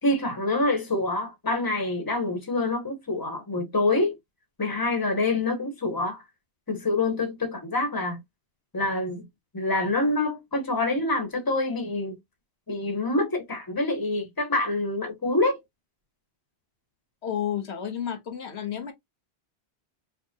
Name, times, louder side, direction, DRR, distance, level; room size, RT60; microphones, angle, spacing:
voice 1, 0.0-4.1 4.6-6.2 6.7-8.2 8.7-9.2 9.5-12.1 12.7-15.6, left 2 dB, 20° left, 1.1 m, -26 dB
voice 2, 17.2-18.9, left 9 dB, 80° left, 1.3 m, -31 dB
4.7 x 2.2 x 2.8 m
omnidirectional pair, 1.1 m